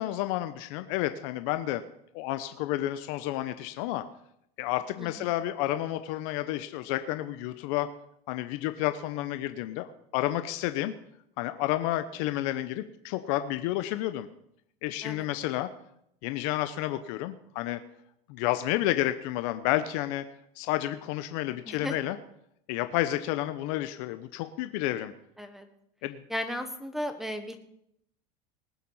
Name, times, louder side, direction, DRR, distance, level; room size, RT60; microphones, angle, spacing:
voice 1, 0.0-1.8 2.1-4.0 4.6-7.9 8.3-10.9 11.4-14.3 14.8-15.7 16.2-17.8 18.3-20.2 20.6-22.2 22.7-25.1 26.0-26.2, left 14 dB, 70° left, 10 dB, 0.9 m, -30 dB
voice 2, 25.4-25.7 26.3-27.6, equal, ahead, 8 dB, 1.3 m, -35 dB
19.5 x 7.4 x 5.6 m, 0.75 s
supercardioid pair, 125°, 18 cm